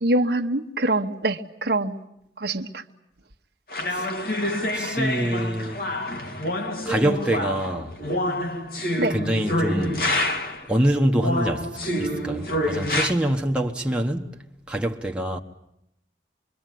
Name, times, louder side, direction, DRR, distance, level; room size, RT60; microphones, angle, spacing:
voice 1, 0.0-2.0 2.4-2.8 9.0-9.1, right 2 dB, 65° right, 1.2 m, -24 dB
sound 1, 3.7-10.7 11.2-13.1, left 1 dB, 55° left, 2.4 m, -27 dB
voice 2, 4.7-5.8 6.8-8.0 9.1-10.0 10.7-11.7 12.0-14.4 14.7-15.4, right 1 dB, 5° right, 1.2 m, -25 dB
26.0 x 23.5 x 9.4 m
head